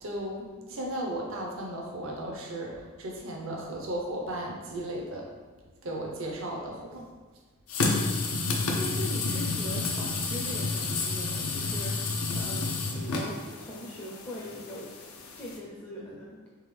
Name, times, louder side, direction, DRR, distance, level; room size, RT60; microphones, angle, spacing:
voice 1, 0.0-5.3 5.8-7.1, right 1 dB, 70° right, -1 dB, 0.8 m, -35 dB
sound 1, 7.7-15.6, left 3 dB, 85° left, 0.6 m, -30 dB
voice 2, 8.7-14.9 15.3-16.4, equal, 20° left, -5 dB, 0.5 m, -41 dB
3.7 x 3.2 x 3.3 m, 1.4 s
head